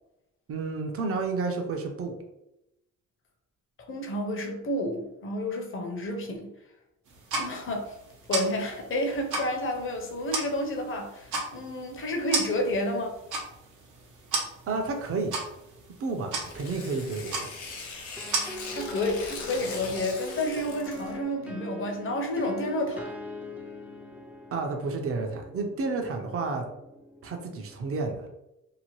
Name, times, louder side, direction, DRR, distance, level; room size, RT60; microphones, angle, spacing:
voice 1, 0.5-2.1 14.7-15.4 16.0-17.5 24.5-26.6 27.2-28.3, right 3 dB, 50° right, 4 dB, 0.6 m, -31 dB
voice 2, 3.9-6.5 7.3-7.9 8.3-13.2 18.7-23.1, left 1 dB, 45° left, 3 dB, 0.7 m, -30 dB
sound 1, 7.0-18.4, right 3 dB, 80° right, 0.8 m, -36 dB
Tearing, 16.4-21.2, left 4 dB, 85° left, 0.7 m, -41 dB
sound 2, 18.2-27.8, left 1 dB, 5° right, 0.4 m, -42 dB
2.9 x 2.2 x 2.9 m, 0.90 s
cardioid pair, 90°, 30 cm